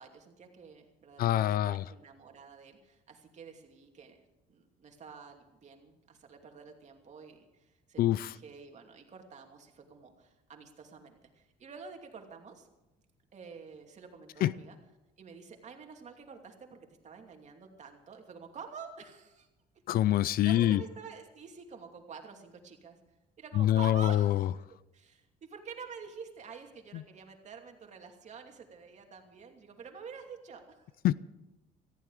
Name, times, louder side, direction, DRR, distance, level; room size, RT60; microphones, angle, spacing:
voice 1, 0.0-4.2 4.5-12.7 13.3-14.8 15.2-19.5 20.4-23.0 23.4-24.6 24.9-30.9, right 6 dB, 45° right, 2.7 m, -49 dB
voice 2, 1.2-1.8 8.0-8.3 14.4-14.5 19.9-20.8 23.6-24.4 31.0-31.1, left 13 dB, 60° left, 0.5 m, -25 dB
18.5 x 14.5 x 4.9 m
cardioid pair, 110°, 17 cm